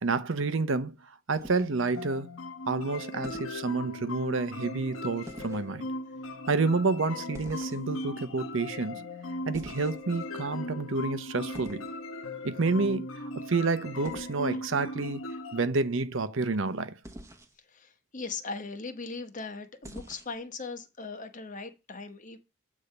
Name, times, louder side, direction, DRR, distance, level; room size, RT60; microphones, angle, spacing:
voice 1, 0.0-2.3 2.7-5.9 6.5-9.0 9.5-11.9 12.4-15.2 15.5-17.0, right 3 dB, 70° right, 0.8 m, -29 dB
sound 1, 1.4-2.0 3.2-3.6 5.3-5.7 7.3-8.0 9.5-10.2 11.5-11.9 14.0-14.3 17.0-17.5 19.8-20.4, right 1 dB, 15° right, 1.1 m, -45 dB
sound 2, 1.9-15.7, left 1 dB, 90° left, 1.1 m, -38 dB
voice 2, 17.7-22.4, left 4 dB, 40° left, 1.0 m, -39 dB
8.4 x 3.7 x 6.6 m
head